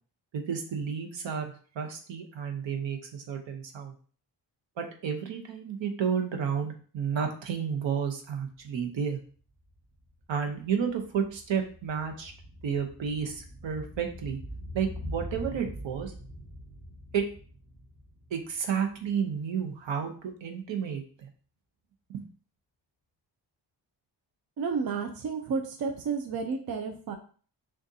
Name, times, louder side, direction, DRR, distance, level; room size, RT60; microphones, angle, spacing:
voice 1, 0.3-3.9 4.8-9.2 10.3-12.3 12.6-14.4 14.7-16.1 17.1-17.3 18.3-21.3 22.1-22.2, right 7 dB, 85° right, 4 dB, 0.9 m, -31 dB
sound 1, 8.6-8.7 8.9-19.3 19.6-19.7, equal, 15° right, 1.8 m, -44 dB
voice 2, 24.6-27.1, right 5 dB, 55° right, 5 dB, 0.6 m, -31 dB
6.2 x 2.5 x 2.7 m, 0.42 s
wide cardioid pair, 170°, 44 cm